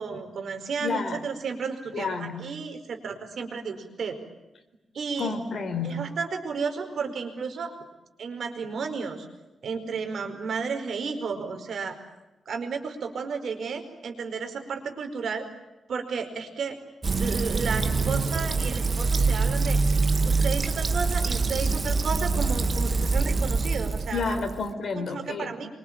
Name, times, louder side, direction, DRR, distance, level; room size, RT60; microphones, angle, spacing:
voice 1, 0.0-4.2 4.9-5.3 5.8-7.7 8.2-9.3 9.6-12.0 12.4-15.4 15.9-16.8 17.2-19.8 20.2-24.4 24.9-25.7, right 5 dB, 60° right, 6 dB, 5.0 m, -32 dB
voice 2, 0.8-1.2 1.9-2.5 5.2-6.1 24.1-25.5, left 4 dB, 50° left, 8 dB, 4.1 m, -30 dB
Fill (with liquid), 17.0-24.7, right 4 dB, 30° right, 1.7 m, -25 dB
26.5 x 24.5 x 9.0 m, 1.0 s
wide cardioid pair, 140°, 0 cm